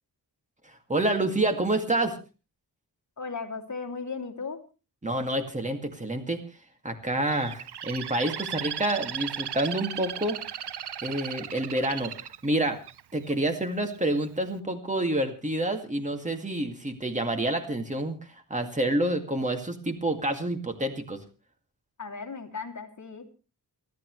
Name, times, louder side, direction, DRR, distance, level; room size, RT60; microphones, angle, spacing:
voice 1, 0.9-2.2 5.0-6.4 6.8-10.4 11.0-12.1 12.4-12.8 13.1-21.2, right 1 dB, 15° right, 6 dB, 2.2 m, -28 dB
voice 2, 3.2-4.6 22.0-23.3, left 4 dB, 45° left, 3 dB, 2.8 m, -36 dB
Bird, 7.3-13.3 13.9-14.3, right 10 dB, 70° right, 0.7 m, -36 dB
29.0 x 12.0 x 3.2 m, 0.33 s
wide cardioid pair, 145°, 41 cm